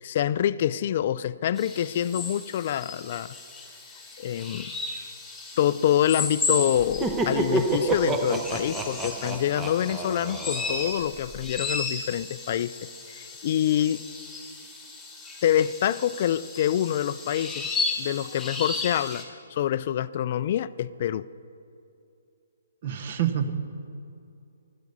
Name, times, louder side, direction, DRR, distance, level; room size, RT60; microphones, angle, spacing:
voice 1, 0.0-3.3 4.2-4.7 5.6-12.8 13.1-14.0 15.4-17.7 18.0-21.3, left 10 dB, 45° left, 17 dB, 0.4 m, -26 dB
sound 1, 1.6-19.2, left 3 dB, 5° left, 1.7 m, -35 dB
Laughter, 6.8-11.4, right 2 dB, 10° right, 0.7 m, -29 dB
voice 2, 22.8-23.5, right 10 dB, 45° right, 10 dB, 1.1 m, -27 dB
16.0 x 11.5 x 5.5 m, 2.6 s
hypercardioid pair, 155°, 0 cm